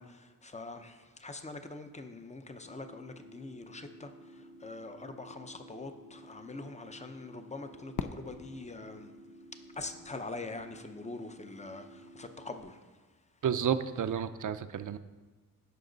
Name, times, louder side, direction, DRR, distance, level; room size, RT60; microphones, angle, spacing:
voice 1, 0.0-9.1 9.7-13.0, left 3 dB, 20° left, 7 dB, 0.6 m, -44 dB
sound 1, 2.6-12.6, right 1 dB, 90° left, 2.3 m, -53 dB
Fireworks, 8.0-10.8, left 7 dB, 60° left, 0.5 m, -43 dB
voice 2, 13.4-15.0, right 8 dB, 60° right, 11 dB, 0.5 m, -31 dB
16.0 x 5.9 x 3.9 m, 1.3 s
wide cardioid pair, 145°, 35 cm